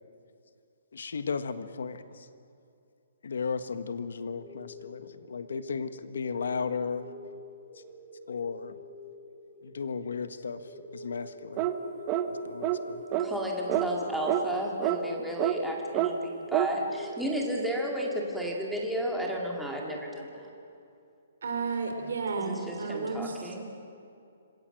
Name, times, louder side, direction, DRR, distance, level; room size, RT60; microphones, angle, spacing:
voice 1, 0.9-2.3 3.2-7.1 8.3-8.8 9.6-11.7 12.3-13.0, left 5 dB, 85° left, 10 dB, 1.6 m, -35 dB
sound 1, 4.3-20.6, left 1 dB, 20° left, 5.1 m, -47 dB
sound 2, 11.6-11.8 12.1-12.3 12.6-12.8 13.1-13.3 13.7-13.9 14.3-14.4 14.8-15.0 15.4-15.6 15.9-16.1 16.5-16.7, right 13 dB, 20° right, 1.0 m, -27 dB
voice 2, 13.2-20.5 22.0-23.6, equal, ahead, -2 dB, 2.2 m, -33 dB
voice 3, 21.4-23.4, right 4 dB, 75° right, 6 dB, 4.6 m, -32 dB
26.5 x 19.5 x 7.9 m, 2.5 s
hypercardioid pair, 175°, 0 cm